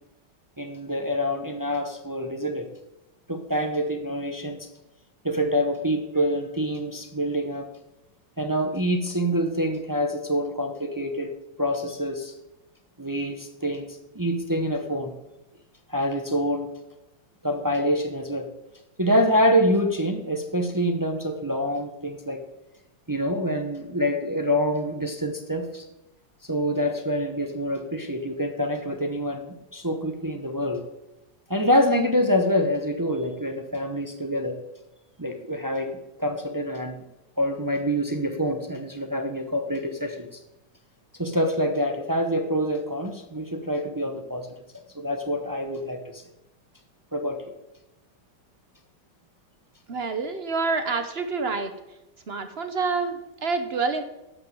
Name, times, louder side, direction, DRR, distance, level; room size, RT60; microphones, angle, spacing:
voice 1, 0.6-2.7 3.3-4.7 5.2-7.7 8.4-12.3 13.0-13.9 14.1-15.1 15.9-16.7 17.4-18.5 19.0-22.4 23.1-25.9 26.4-30.8 31.5-34.6 35.2-37.0 37.4-40.4 41.2-44.5 44.9-46.2 47.1-47.5, equal, 25° right, 6 dB, 0.4 m, -26 dB
voice 2, 49.9-51.7 52.3-54.0, right 4 dB, 50° right, 8 dB, 0.8 m, -27 dB
11.5 x 5.8 x 7.6 m, 0.95 s
omnidirectional pair, 1.9 m